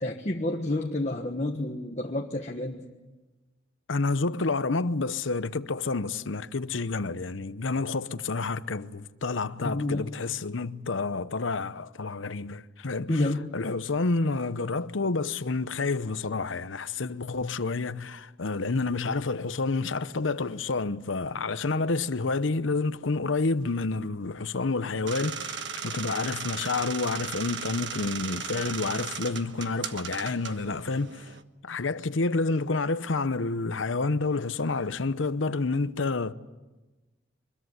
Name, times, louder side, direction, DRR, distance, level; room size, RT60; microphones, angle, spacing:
voice 1, 0.0-2.8 9.6-10.0 13.1-13.5, left 1 dB, 35° left, 1.4 m, -29 dB
voice 2, 3.9-31.3 31.6-36.3, left 3 dB, 80° left, 0.9 m, -29 dB
sound 1, 25.1-31.4, right 6 dB, 65° right, 1.3 m, -37 dB
24.5 x 22.0 x 9.6 m
head